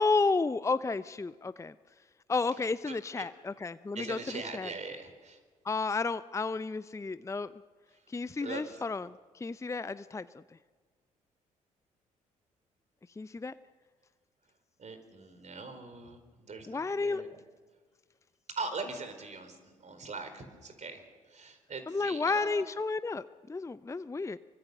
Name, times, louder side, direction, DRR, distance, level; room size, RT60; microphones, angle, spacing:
voice 1, 0.0-1.7 2.3-4.7 5.6-7.5 8.1-10.4 13.2-13.5 16.7-17.2 21.9-24.4, left 4 dB, 15° left, 15 dB, 0.6 m, -32 dB
voice 2, 2.9-3.3 3.9-5.4 8.4-8.8 14.8-16.2 16.5-17.3 18.6-21.0 21.3-22.6, right 4 dB, 40° right, 8 dB, 4.5 m, -41 dB
25.5 x 24.0 x 6.7 m, 1.5 s
figure-of-eight pair, 45°, 18 cm